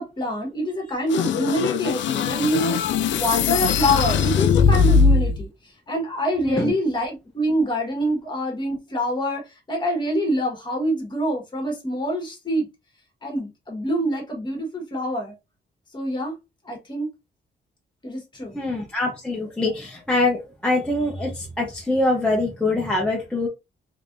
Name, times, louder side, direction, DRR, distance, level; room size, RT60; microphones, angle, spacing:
voice 1, 0.0-5.5 5.9-12.7 13.2-15.3 15.9-16.3 16.6-17.1 18.0-18.5, equal, 25° left, 1.3 m, -25 dB
sound 1, 1.1-5.4, left 5 dB, 85° left, 0.4 m, -20 dB
voice 2, 18.5-23.5, left 2 dB, 5° left, 0.7 m, -24 dB
3.4 x 3.3 x 2.6 m
wide cardioid pair, 170°, 19 cm